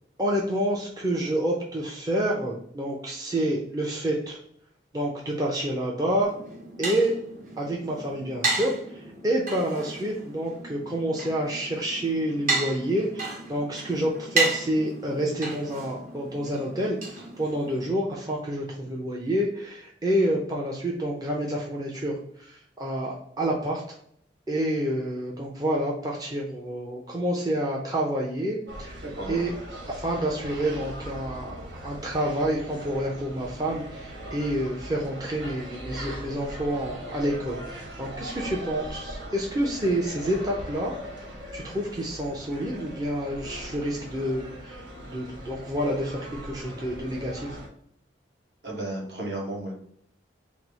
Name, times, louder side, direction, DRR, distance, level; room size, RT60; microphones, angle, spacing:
voice 1, 0.2-4.4 4.9-6.3 6.8-7.1 7.6-24.0 24.5-29.5 29.9-41.0 41.5-47.6, right 1 dB, 20° right, -3 dB, 0.5 m, -28 dB
sound 1, 6.2-17.9, right 3 dB, 45° right, 1.0 m, -33 dB
sound 2, 28.7-47.7, right 1 dB, 90° right, 1.3 m, -40 dB
voice 2, 48.6-49.7, right 1 dB, 65° right, -2 dB, 1.4 m, -33 dB
4.4 x 2.0 x 3.9 m, 0.67 s
head